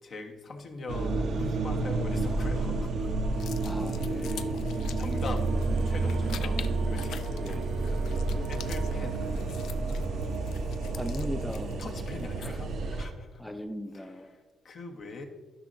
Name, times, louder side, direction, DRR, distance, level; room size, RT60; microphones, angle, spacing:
voice 1, 0.0-3.3 3.6-4.6 5.0-5.5 5.8-6.6 6.8-7.6 8.5-9.2 11.8-13.4 13.9-15.2, left 3 dB, 55° left, 3 dB, 1.2 m, -42 dB
sound 1, 0.9-13.0, right 3 dB, 65° right, 0.7 m, -30 dB
sound 2, 3.3-12.7, left 9 dB, 80° left, 0.4 m, -47 dB
voice 2, 3.6-4.5 7.4-7.6 8.3-8.5 11.0-11.9 12.4-12.5 13.4-14.3, equal, 5° left, 5 dB, 0.5 m, -38 dB
12.0 x 5.5 x 2.6 m, 1.4 s
cardioid pair, 90°, 0 cm